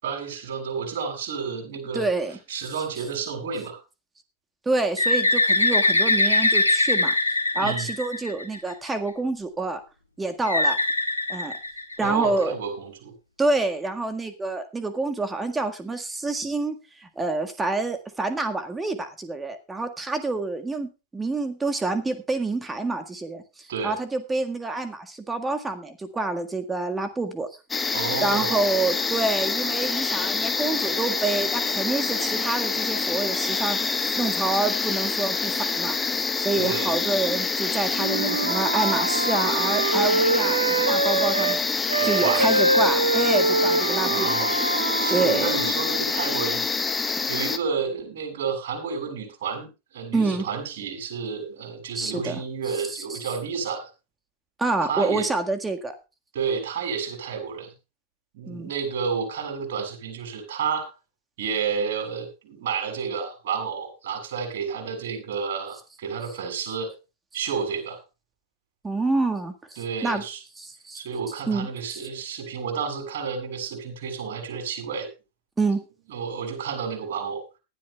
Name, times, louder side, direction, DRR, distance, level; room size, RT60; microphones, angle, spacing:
voice 1, 0.0-2.1 2.5-3.8 7.5-7.9 12.0-13.1 23.7-23.9 27.9-28.6 36.6-36.9 42.0-42.6 44.1-44.5 45.0-46.6 47.3-53.9 54.8-55.3 56.3-57.7 58.3-60.9 61.4-66.9 67.3-68.0 69.8-70.4 70.9-75.1 76.1-77.4, right 6 dB, 55° right, 3 dB, 7.0 m, -30 dB
voice 2, 1.9-2.4 4.7-7.2 7.6-9.8 10.2-10.8 11.3-11.6 12.0-12.5 13.4-27.5 28.2-44.5 45.1-45.5 50.1-50.5 51.9-52.4 52.9-53.2 54.6-56.0 58.5-58.7 68.8-70.2 70.6-71.0 71.5-72.0 75.6-75.8, right 3 dB, 10° right, 7 dB, 1.7 m, -27 dB
Bird, 5.0-8.7 10.5-12.2, left 2 dB, 85° left, 1.8 m, -22 dB
sound 1, 27.7-47.6, left 4 dB, 15° left, 1.2 m, -26 dB
Wind instrument woodwind instrument, 38.0-41.6 41.9-45.8, right 3 dB, 75° right, 1.3 m, -24 dB
19.5 x 12.0 x 2.4 m, 0.30 s
figure-of-eight pair, 90°, 0 cm